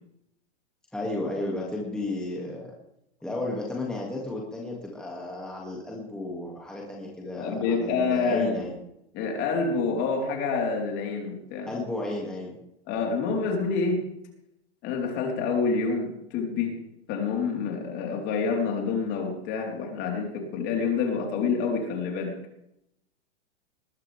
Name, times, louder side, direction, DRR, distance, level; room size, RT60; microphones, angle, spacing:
voice 1, 0.9-2.7 3.2-8.7 11.7-12.5, left 2 dB, ahead, -3 dB, 2.3 m, -33 dB
voice 2, 7.4-8.7 9.1-11.7 12.9-14.1 14.8-16.8 17.1-22.4, left 4 dB, 35° left, 1 dB, 4.0 m, -27 dB
20.0 x 12.0 x 3.5 m, 0.80 s
hypercardioid pair, 145°, 34 cm